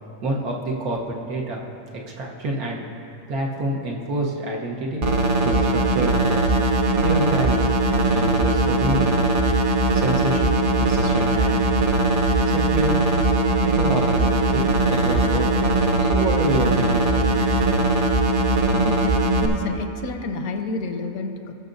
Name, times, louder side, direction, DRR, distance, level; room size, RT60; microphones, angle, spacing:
voice 1, 0.2-1.6 1.9-2.8 3.3-5.0 5.4-6.4 7.0-7.7 8.1-9.1 9.9-10.5 10.8-11.6 12.4-12.9 13.6-15.7 16.1-17.5, right 1 dB, 90° right, -2 dB, 1.6 m, -27 dB
sound 1, 5.0-19.5, right 2 dB, 50° right, 0.7 m, -20 dB
voice 2, 18.7-21.5, left 3 dB, 80° left, 7 dB, 1.2 m, -29 dB
19.5 x 6.6 x 2.6 m, 2.7 s
omnidirectional pair, 1.5 m